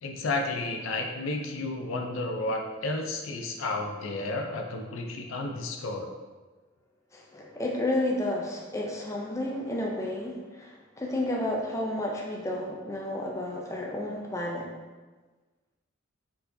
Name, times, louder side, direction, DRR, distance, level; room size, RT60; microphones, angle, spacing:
voice 1, 0.0-6.1, left 2 dB, 70° left, 3 dB, 0.5 m, -32 dB
voice 2, 7.1-14.7, left 1 dB, 15° left, -2 dB, 0.4 m, -31 dB
4.3 x 4.1 x 2.6 m, 1.3 s
head